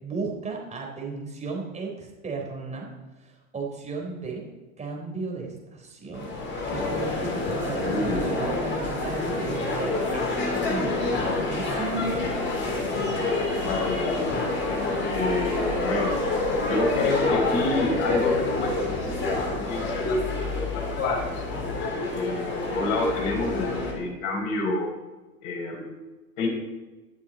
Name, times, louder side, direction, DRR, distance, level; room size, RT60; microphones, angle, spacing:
voice 1, 0.0-2.9 3.2-4.4 4.8-11.0 11.5-13.2, right 3 dB, 15° right, 0 dB, 3.7 m, -35 dB
sound 1, 6.1-23.9, left 2 dB, 25° left, 3.8 m, -27 dB
voice 2, 7.8-8.3 13.6-14.6 15.0-16.2 16.6-19.1 19.5-20.2 20.7-21.4 22.1-24.9 25.4-26.0 26.4-26.5, left 2 dB, 50° left, 0 dB, 4.6 m, -28 dB
22.0 x 7.3 x 4.1 m, 1.2 s
hypercardioid pair, 125°, 43 cm